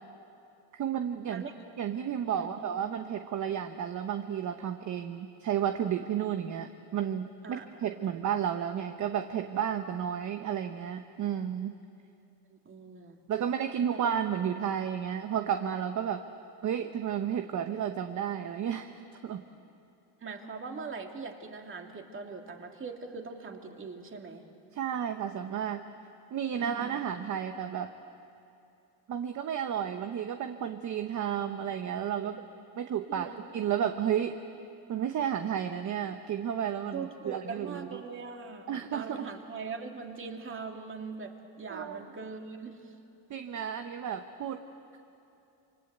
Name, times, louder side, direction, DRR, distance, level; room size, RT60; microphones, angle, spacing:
voice 1, 0.8-1.4 1.8-11.7 13.3-16.2 16.6-18.9 19.2-19.4 24.7-25.8 26.3-27.9 29.1-32.5 32.8-34.4 34.9-38.0 38.7-39.3 41.7-42.0 43.3-44.6, right 9 dB, 45° right, 7 dB, 1.1 m, -32 dB
voice 2, 7.4-7.9 12.5-13.2 13.9-14.0 20.2-24.4 26.6-26.9 33.1-33.4 36.9-42.9, right 4 dB, 30° right, 3 dB, 2.6 m, -41 dB
27.5 x 24.5 x 8.1 m, 2.7 s
cardioid pair, 120°, 41 cm